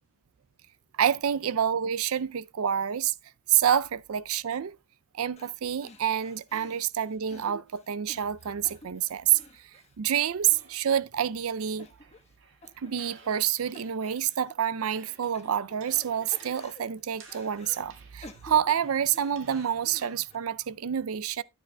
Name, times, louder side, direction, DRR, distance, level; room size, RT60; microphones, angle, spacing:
voice 1, 1.0-3.1 3.5-4.8 5.1-11.9 12.8-21.4, right 9 dB, 80° right, 0.5 m, -28 dB
sound 1, 5.4-5.6 5.8-11.0 11.3-11.4 11.8-12.4 12.6-13.5 13.7-14.5 15.0-16.1 16.3-17.8 18.2-20.4, left 2 dB, 30° left, 1.2 m, -52 dB
sound 2, 10.4-14.3 14.6-20.5, right 5 dB, 60° right, 2.0 m, -55 dB
12.0 x 9.0 x 2.2 m
head